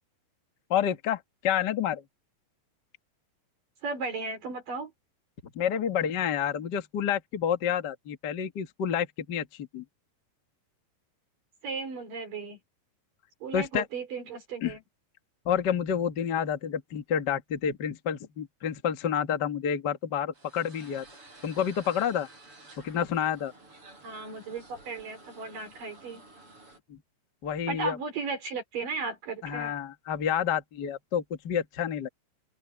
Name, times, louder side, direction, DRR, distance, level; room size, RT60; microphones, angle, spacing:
voice 1, 0.7-2.0 5.5-9.8 13.5-13.8 14.6-14.8 15.4-21.0 21.4-22.3 22.8-23.5 26.9-27.0 27.4-28.0 29.4-32.1, left 8 dB, 75° left, 1.0 m, -29 dB
voice 2, 3.8-4.9 11.6-12.6 13.4-14.8 24.0-26.2 27.7-29.7, right 4 dB, 55° right, 5.5 m, -35 dB
sound 1, 20.3-26.8, right 2 dB, 30° right, 7.1 m, -52 dB
open air
omnidirectional pair, 4.7 m